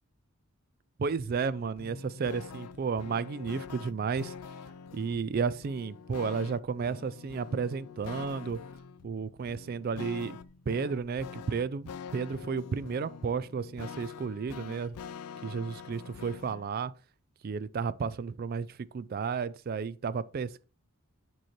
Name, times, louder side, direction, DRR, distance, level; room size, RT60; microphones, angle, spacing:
voice 1, 1.0-4.3 4.9-8.6 9.0-10.4 10.7-14.9 15.4-16.9 17.4-20.6, right 5 dB, 40° right, 0.3 m, -32 dB
sound 1, 1.3-16.6, left 6 dB, 90° left, 0.4 m, -45 dB
8.9 x 3.2 x 4.3 m
head